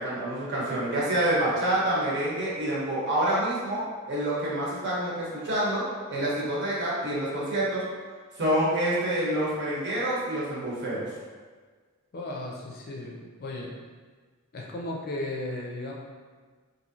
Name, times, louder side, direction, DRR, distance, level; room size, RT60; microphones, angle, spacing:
voice 1, 0.0-3.8 4.1-5.8 6.1-7.8 8.4-11.1, right 1 dB, 55° right, -7 dB, 1.0 m, -27 dB
voice 2, 12.1-13.7 14.5-15.9, left 1 dB, 45° left, -1 dB, 0.5 m, -35 dB
3.0 x 2.6 x 2.7 m, 1.5 s
head